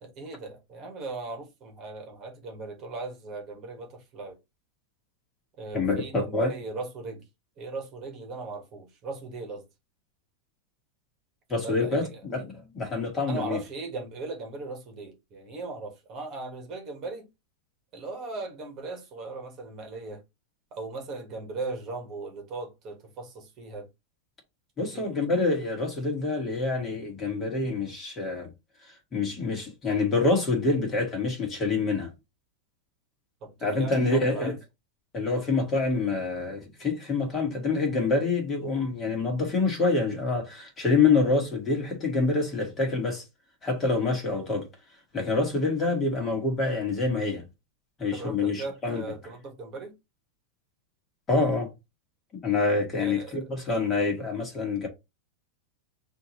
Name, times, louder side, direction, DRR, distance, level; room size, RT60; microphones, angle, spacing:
voice 1, 0.0-4.4 5.6-7.2 7.6-9.7 11.5-12.3 13.3-17.3 17.9-20.2 20.7-23.9 24.8-25.1 33.4-34.6 48.1-49.9 53.0-53.4, right 3 dB, 30° right, 1.6 m, -38 dB
voice 2, 5.7-6.5 11.5-13.6 24.8-28.5 29.1-32.1 33.6-34.5 35.1-43.2 43.6-44.7 45.1-47.4 48.0-49.0 51.3-51.7 52.4-54.9, left 3 dB, 15° left, 1.9 m, -26 dB
6.1 x 2.8 x 3.1 m
supercardioid pair, 165°, 0 cm